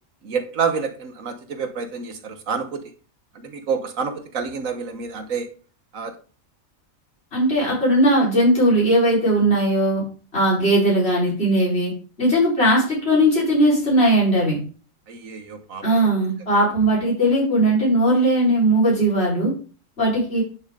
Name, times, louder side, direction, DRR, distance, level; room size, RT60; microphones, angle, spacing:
voice 1, 0.2-2.8 3.3-5.5 5.9-6.1 15.1-16.1, right 5 dB, 80° right, 8 dB, 1.6 m, -28 dB
voice 2, 7.3-10.0 10.3-11.9 12.2-14.6 15.8-19.5 20.0-20.4, right 1 dB, 50° left, -6 dB, 4.6 m, -18 dB
10.5 x 7.2 x 3.8 m, 0.39 s
omnidirectional pair, 1.4 m